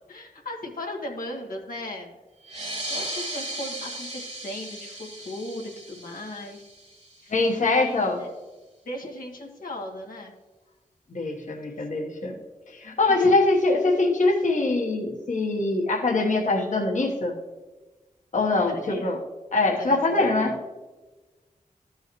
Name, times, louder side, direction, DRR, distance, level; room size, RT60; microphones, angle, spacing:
voice 1, 0.1-2.2 2.9-6.6 7.2-7.3 7.6-8.3 8.8-10.3 13.2-13.3 18.6-19.1 19.8-20.6, left 1 dB, 90° left, -1 dB, 1.6 m, -37 dB
sound 1, 2.4-7.5, right 1 dB, 50° right, 1.7 m, -36 dB
voice 2, 7.3-8.2 11.1-12.3 12.7-17.3 18.3-19.2 19.5-20.5, left 2 dB, 65° left, -2 dB, 1.2 m, -23 dB
13.5 x 5.5 x 3.0 m, 1.2 s
wide cardioid pair, 65°, 14 cm